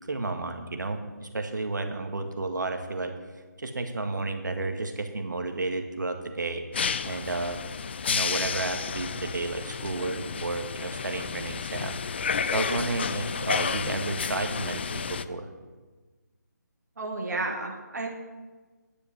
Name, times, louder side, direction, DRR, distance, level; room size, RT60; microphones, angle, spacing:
voice 1, 0.0-3.1 3.6-6.6 7.0-7.6 8.0-12.0 12.4-15.5, right 3 dB, 75° right, 6 dB, 1.7 m, -32 dB
sound 1, 6.7-15.2, left 6 dB, 35° left, 0.4 m, -31 dB
voice 2, 17.0-18.1, right 2 dB, 60° right, 1 dB, 1.9 m, -32 dB
10.5 x 6.8 x 8.3 m, 1.3 s
figure-of-eight pair, 165°, 10 cm